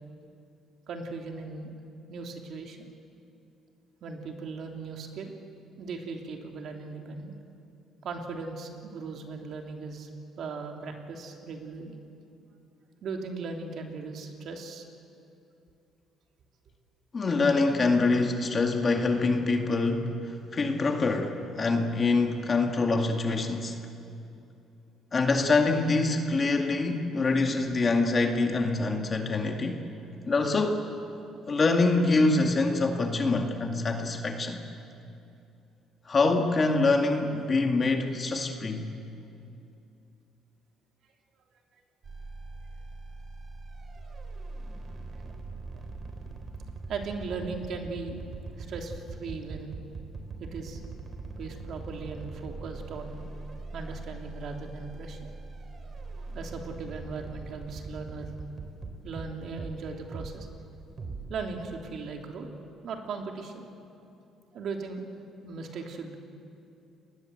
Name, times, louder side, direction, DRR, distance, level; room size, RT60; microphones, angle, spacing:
voice 1, 0.9-1.7 2.1-2.9 4.0-5.3 5.8-7.3 8.0-10.1 10.4-11.9 13.0-14.8 45.1-45.3 45.7-45.8 46.9-48.2 48.5-49.7 50.4-50.8 51.4-53.2 53.7-55.3 56.2-58.3 59.0-60.5 61.3-62.5 62.8-63.7 64.5-65.0 65.4-66.2, right 4 dB, 55° right, 3 dB, 3.1 m, -38 dB
voice 2, 17.1-23.8 25.1-29.8 30.3-30.8 31.5-34.6 36.1-38.9, left 3 dB, 30° left, 3 dB, 2.1 m, -25 dB
sound 1, 42.0-59.8 60.1-60.4 61.0-61.4, right 3 dB, 35° right, 3.8 m, -41 dB
30.0 x 20.0 x 8.0 m, 2.7 s
cardioid pair, 125°, 0 cm